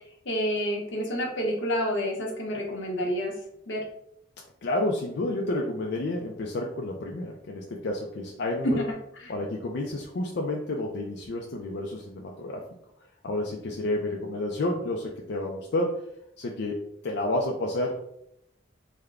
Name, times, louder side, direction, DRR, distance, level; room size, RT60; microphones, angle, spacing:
voice 1, 0.2-3.3 3.7-3.9 8.6-8.8 9.2-9.3, equal, 90° left, 0 dB, 0.9 m, -28 dB
voice 2, 4.6-8.8 9.3-12.6 13.2-16.0 16.4-17.9, left 1 dB, 65° left, 0 dB, 0.4 m, -30 dB
3.6 x 2.1 x 3.3 m, 0.75 s
head